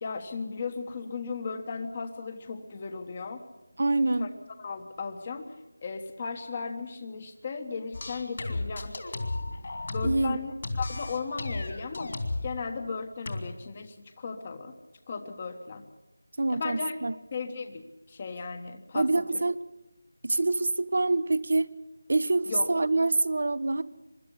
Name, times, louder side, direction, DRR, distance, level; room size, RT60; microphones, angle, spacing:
voice 1, 0.0-3.4 4.2-4.3 4.6-5.5 5.8-8.9 9.9-12.1 12.4-14.7 15.1-15.8 16.5-17.0 17.3-19.1 22.5-22.7, left 5 dB, 30° left, 8 dB, 1.4 m, -36 dB
voice 2, 3.8-4.3 10.0-10.4 16.4-17.1 18.9-19.6 20.2-21.7 22.1-23.8, right 2 dB, 55° right, 16 dB, 1.0 m, -25 dB
sound 1, 7.9-10.3 10.6-12.5 13.3-13.4, left 2 dB, 50° left, 3.1 m, -33 dB
24.5 x 12.5 x 9.8 m, 1.0 s
figure-of-eight pair, 165°, 0 cm